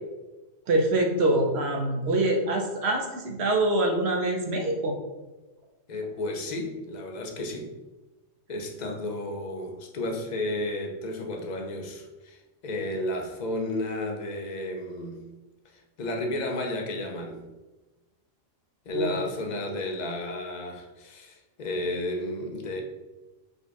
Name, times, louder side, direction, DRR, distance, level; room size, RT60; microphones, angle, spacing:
voice 1, 0.7-4.9 18.9-19.2, right 2 dB, 60° right, 2 dB, 1.0 m, -25 dB
voice 2, 5.9-7.7 8.5-15.2 15.7-17.4 18.9-22.8, left 1 dB, 45° left, 3 dB, 0.6 m, -32 dB
5.3 x 2.3 x 4.1 m, 1.1 s
omnidirectional pair, 1.3 m